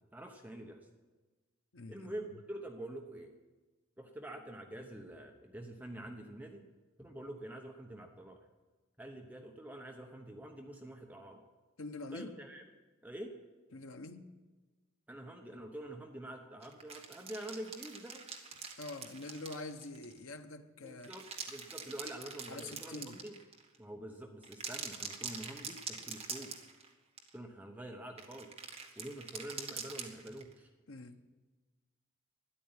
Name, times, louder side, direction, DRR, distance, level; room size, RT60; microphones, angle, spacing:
voice 1, 0.1-0.8 1.9-3.3 4.0-6.7 7.0-8.5 9.0-11.4 12.1-12.6 13.0-13.3 15.1-18.2 20.8-23.4 23.8-26.6 27.3-28.5 29.0-30.7, right 1 dB, 10° right, 2 dB, 0.9 m, -46 dB
voice 2, 1.7-2.1 11.8-12.3 13.7-14.4 18.8-21.1 22.5-23.2 30.9-31.2, left 2 dB, 85° left, 7 dB, 1.0 m, -45 dB
sound 1, 16.6-20.2 20.9-23.8 24.4-26.9 27.2-27.3 28.2-30.5, right 5 dB, 30° right, 1.6 m, -45 dB
13.0 x 11.0 x 8.8 m, 1.3 s
head